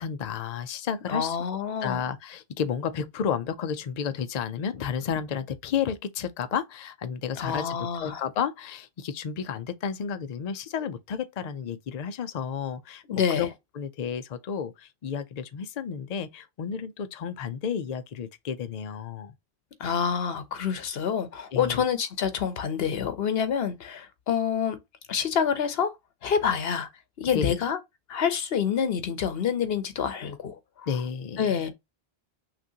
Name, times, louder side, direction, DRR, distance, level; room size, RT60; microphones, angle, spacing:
voice 1, 0.0-1.4 1.8-13.0 13.3-13.5 13.7-19.3 21.5-21.8 27.2-27.6 30.9-31.5, left 7 dB, 50° left, 0.5 m, -32 dB
voice 2, 1.1-2.0 7.4-8.2 13.1-13.5 19.8-24.8 25.1-25.9 26.2-26.9 27.2-27.8 28.1-30.6 31.4-31.7, left 7 dB, 70° left, 1.0 m, -27 dB
5.9 x 2.6 x 2.8 m
omnidirectional pair, 1.1 m